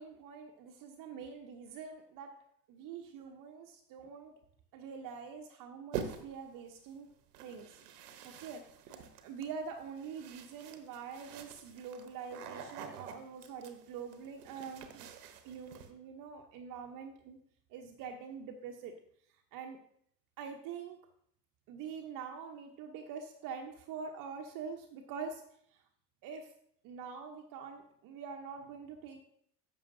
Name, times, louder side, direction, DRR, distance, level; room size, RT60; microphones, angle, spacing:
voice 1, 0.0-2.4 2.7-4.3 4.7-7.1 7.4-7.8 8.2-15.1 15.4-17.4 17.7-19.0 19.5-19.8 20.4-21.0 21.7-25.4 25.7-25.8 26.2-26.5 26.8-29.2, right 6 dB, 40° right, 3 dB, 0.9 m, -45 dB
sound 1, 5.9-6.5 7.3-15.9, right 7 dB, 65° right, 1.0 m, -46 dB
11.0 x 6.9 x 2.6 m, 0.67 s
figure-of-eight pair, 70°, 49 cm